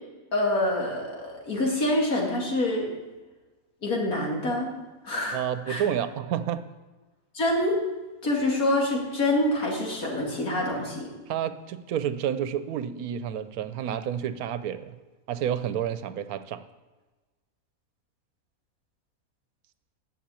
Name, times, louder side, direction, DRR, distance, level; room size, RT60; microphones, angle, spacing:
voice 1, 0.3-2.9 3.8-4.7 5.0-5.4 5.7-5.8 7.3-7.7 8.2-11.1, left 1 dB, 80° left, -1 dB, 2.9 m, -26 dB
voice 2, 5.3-6.6 11.3-14.9 15.3-16.7, right 9 dB, 80° right, 12 dB, 1.2 m, -30 dB
10.5 x 6.9 x 8.3 m, 1.2 s
omnidirectional pair, 1.5 m